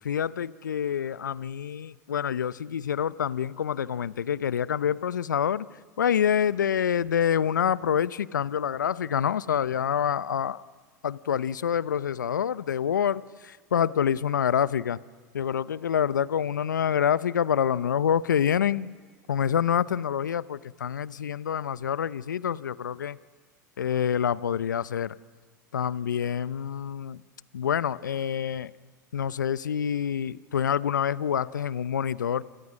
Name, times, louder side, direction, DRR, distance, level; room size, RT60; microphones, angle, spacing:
voice 1, 0.0-5.7 6.0-10.6 11.0-15.0 15.3-18.9 19.3-23.2 23.8-25.2 25.7-27.2 27.5-28.7 29.1-32.4, left 8 dB, 85° left, 19 dB, 0.7 m, -27 dB
28.5 x 27.5 x 6.4 m, 1.5 s
hypercardioid pair, 90°, 10 cm